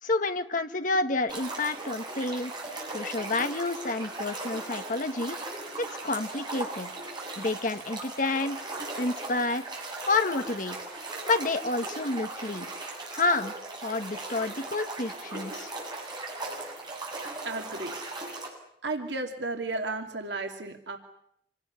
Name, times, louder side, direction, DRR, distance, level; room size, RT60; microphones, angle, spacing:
voice 1, 0.0-2.5 2.9-5.4 5.8-6.9 7.4-9.7 10.1-10.8 11.3-12.7 13.1-13.5 13.8-15.7, left 3 dB, 50° left, 7 dB, 1.7 m, -29 dB
sound 1, 1.3-18.5, right 2 dB, 25° right, 7.9 m, -38 dB
voice 2, 17.4-17.9 18.8-21.0, right 3 dB, 85° right, 4 dB, 2.7 m, -33 dB
27.5 x 18.5 x 9.7 m, 0.75 s
head